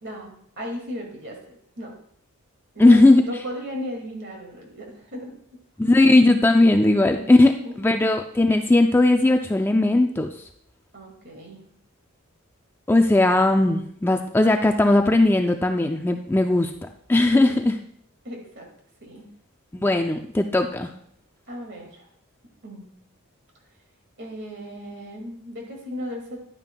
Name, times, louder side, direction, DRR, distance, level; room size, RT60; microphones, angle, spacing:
voice 1, 0.0-1.9 2.7-5.3 5.8-6.0 7.0-8.0 10.9-11.6 17.3-17.6 18.2-18.7 19.0-19.3 21.5-22.1 22.6-22.9 24.2-26.4, equal, 55° right, 1 dB, 2.2 m, -36 dB
voice 2, 2.8-3.2 5.8-7.5 7.8-10.4 12.9-16.7 17.1-17.8 19.7-20.9, left 2 dB, 10° left, 5 dB, 0.3 m, -18 dB
10.5 x 9.3 x 2.3 m, 0.65 s
head